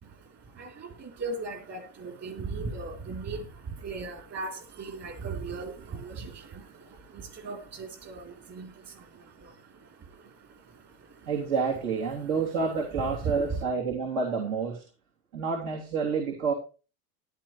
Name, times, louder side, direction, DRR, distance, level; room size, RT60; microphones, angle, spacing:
voice 1, 0.0-11.5 12.1-13.6, right 4 dB, 35° right, 5 dB, 3.6 m, -39 dB
voice 2, 11.3-14.8 15.3-16.5, right 5 dB, 75° right, 0 dB, 3.3 m, -29 dB
14.0 x 12.0 x 3.2 m, 0.33 s
supercardioid pair, 130°, 44 cm